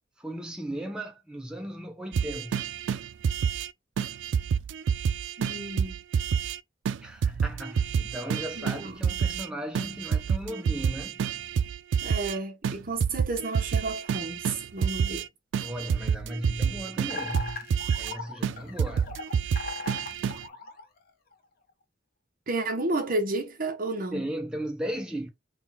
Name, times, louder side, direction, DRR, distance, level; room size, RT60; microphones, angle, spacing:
voice 1, 0.2-2.6 7.0-11.2 15.6-17.6 18.0-19.2 24.1-25.3, right 1 dB, 5° right, 0.6 m, -36 dB
sound 1, 2.1-3.7 4.0-6.6 6.8-7.0 7.2-9.5 9.7-12.4 12.6-15.2 15.5-18.1 18.4-20.4, right 7 dB, 85° right, 0.3 m, -28 dB
voice 2, 5.4-5.9 8.6-9.1 12.0-15.2 22.5-24.2, right 2 dB, 50° right, 1.1 m, -32 dB
sound 2, 17.1-21.3, left 3 dB, 55° left, 0.9 m, -39 dB
3.6 x 2.4 x 4.0 m
head